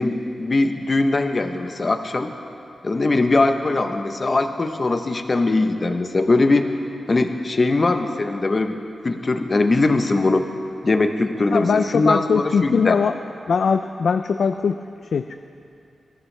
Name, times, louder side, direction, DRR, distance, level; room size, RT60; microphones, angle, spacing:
voice 1, 0.0-2.3 2.8-6.7 7.1-8.8 9.0-10.5 10.8-13.0, left 2 dB, 35° left, 6 dB, 0.8 m, -21 dB
voice 2, 11.5-13.2 13.5-15.4, left 5 dB, 70° left, 8 dB, 0.4 m, -21 dB
21.5 x 14.5 x 3.4 m, 2.6 s
wide cardioid pair, 140°, 0 cm